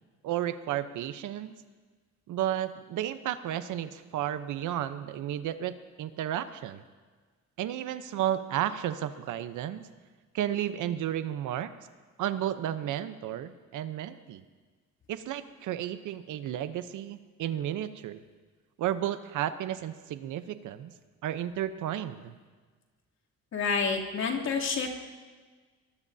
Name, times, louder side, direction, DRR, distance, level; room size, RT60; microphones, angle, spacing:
voice 1, 0.2-1.6 2.3-6.8 7.6-9.9 10.3-11.7 12.2-14.4 15.1-18.2 18.8-20.9 21.2-22.4, right 11 dB, 80° right, 11 dB, 0.9 m, -33 dB
voice 2, 23.5-24.9, left 5 dB, 60° left, -3 dB, 3.1 m, -28 dB
23.0 x 19.5 x 2.8 m, 1.4 s
cardioid pair, 90°, 30 cm